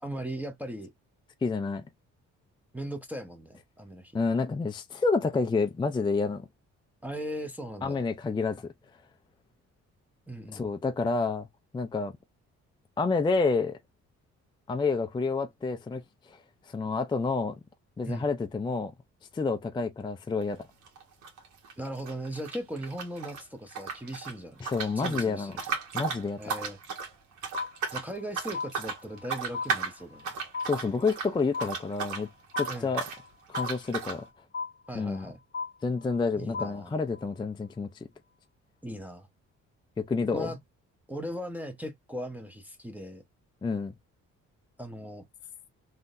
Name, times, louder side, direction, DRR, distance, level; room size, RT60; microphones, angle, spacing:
voice 1, 0.0-0.9 2.7-4.2 7.0-8.0 10.3-10.7 18.1-18.3 21.8-24.6 25.0-25.7 26.4-26.8 27.9-30.3 32.7-32.9 34.9-35.4 36.3-36.9 38.8-39.3 40.3-40.6 41.1-43.2 44.8-45.2, right 1 dB, 5° right, 0.8 m, -38 dB
voice 2, 1.4-1.8 4.1-6.5 7.8-8.6 10.5-11.5 11.7-12.1 13.0-13.8 14.7-16.0 16.3-16.4 16.7-17.6 18.0-18.9 19.3-20.6 24.6-25.6 25.9-26.4 30.6-32.3 32.6-33.0 33.5-34.2 34.9-35.3 35.8-38.1 40.1-40.5 43.6-43.9, left 4 dB, 15° left, 0.4 m, -29 dB
sound 1, 20.4-20.6 20.9-23.4 23.7-32.2 32.5-33.2 33.5-34.2, right 5 dB, 75° right, 1.4 m, -35 dB
sound 2, 27.5-28.3 28.5-29.3 29.5-30.3 30.5-31.3 31.5-32.3 32.5-33.3 33.5-34.3 34.5-35.3 35.5-36.3 36.5-37.3, left 5 dB, 35° left, 0.9 m, -36 dB
3.5 x 2.8 x 2.5 m
cardioid pair, 90°, 30 cm